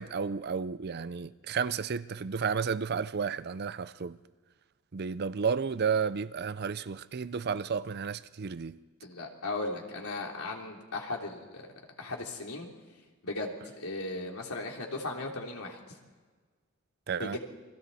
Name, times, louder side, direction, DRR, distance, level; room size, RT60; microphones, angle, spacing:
voice 1, 0.0-4.2 4.9-8.8 17.1-17.4, right 6 dB, 45° right, 0.5 m, -32 dB
voice 2, 9.0-11.7 12.0-12.7 13.2-15.8 17.2-17.4, left 2 dB, 80° left, 3.4 m, -37 dB
28.5 x 23.0 x 4.2 m
head